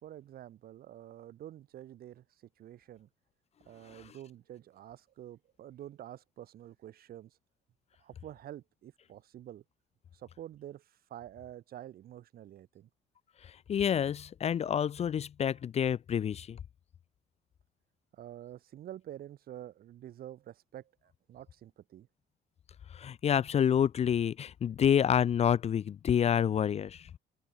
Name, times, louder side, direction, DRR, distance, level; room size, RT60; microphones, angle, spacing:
voice 1, 0.0-2.2 2.6-3.1 3.7-7.4 8.0-9.6 10.1-12.9 18.1-22.1, right 12 dB, 60° right, 3.6 m, -48 dB
voice 2, 13.4-16.6 22.9-27.1, left 8 dB, 40° left, 0.6 m, -28 dB
cardioid pair, 110°, 17 cm